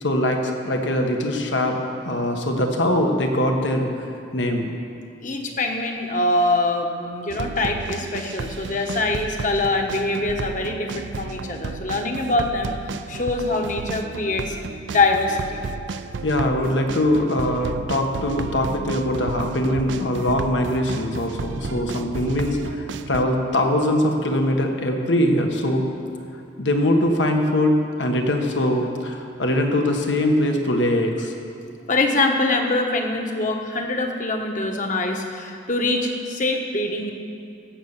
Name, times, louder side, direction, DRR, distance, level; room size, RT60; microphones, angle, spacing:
voice 1, 0.0-4.1 4.3-4.7 16.2-25.8 26.6-31.3, left 1 dB, 80° left, 3 dB, 1.5 m, -22 dB
voice 2, 5.2-12.8 13.1-14.6 14.9-15.6 31.9-37.1, left 2 dB, 45° left, 3 dB, 1.3 m, -24 dB
sound 1, 7.3-23.3, right 4 dB, 75° right, 0.4 m, -33 dB
16.5 x 6.7 x 7.3 m, 2.4 s
head